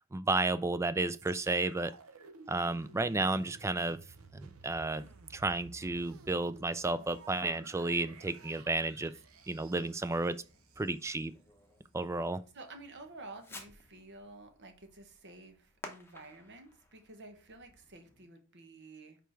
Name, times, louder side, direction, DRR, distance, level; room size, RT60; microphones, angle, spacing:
voice 1, 0.1-1.9 2.5-4.0 4.3-5.0 5.3-9.1 9.5-10.4 10.8-11.3 11.9-12.4, right 2 dB, 15° right, 0.3 m, -32 dB
sound 1, 1.1-11.2 11.8-11.9, right 4 dB, 85° right, 0.8 m, -55 dB
Fireworks, 7.6-18.3, left 2 dB, 10° left, 0.9 m, -56 dB
voice 2, 12.5-19.2, right 2 dB, 55° right, 1.1 m, -51 dB
5.1 x 4.6 x 4.4 m
head